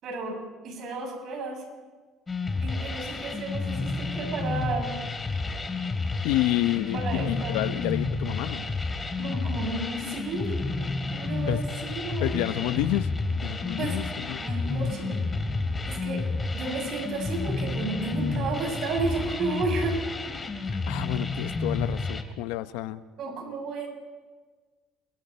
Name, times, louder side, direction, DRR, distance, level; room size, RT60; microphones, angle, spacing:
voice 1, 0.0-1.6 2.6-5.1 6.9-7.6 9.2-10.5 11.1-12.4 13.8-15.5 15.9-16.2 16.5-20.0 23.2-23.9, right 3 dB, 55° right, 2 dB, 7.7 m, -32 dB
sound 1, 2.3-22.2, left 3 dB, 20° left, 2.9 m, -30 dB
voice 2, 6.2-8.8 11.5-11.6 12.2-13.1 13.4-14.4 20.7-23.0, left 16 dB, 85° left, 12 dB, 0.9 m, -29 dB
29.5 x 22.0 x 4.4 m, 1.4 s
supercardioid pair, 100°, 0 cm